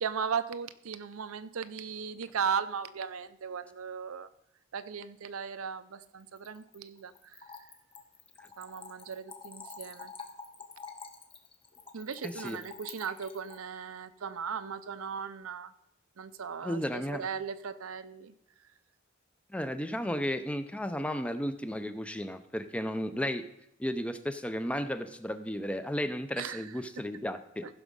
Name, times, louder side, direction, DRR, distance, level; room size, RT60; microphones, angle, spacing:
voice 1, 0.0-4.3 4.7-7.4 8.6-10.1 11.9-15.7 16.2-18.3 26.4-26.6, right 6 dB, 85° right, 13 dB, 0.6 m, -37 dB
Splash splatter / Trickle dribble, 6.2-13.6, left 5 dB, 25° left, 1.2 m, -48 dB
voice 2, 12.2-12.6 16.6-17.3 19.5-23.4 23.8-27.7, equal, 5° left, 10 dB, 0.6 m, -34 dB
15.0 x 6.1 x 5.4 m, 0.79 s
head